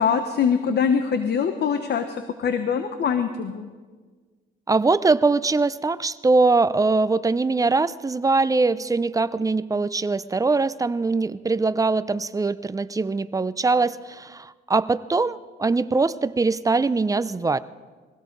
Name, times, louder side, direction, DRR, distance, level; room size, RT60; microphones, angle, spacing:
voice 1, 0.0-3.7, left 6 dB, 55° left, 8 dB, 1.0 m, -23 dB
voice 2, 4.7-17.6, right 3 dB, 15° right, 15 dB, 0.5 m, -22 dB
22.0 x 16.5 x 4.0 m, 1.5 s
cardioid pair, 90°, 20 cm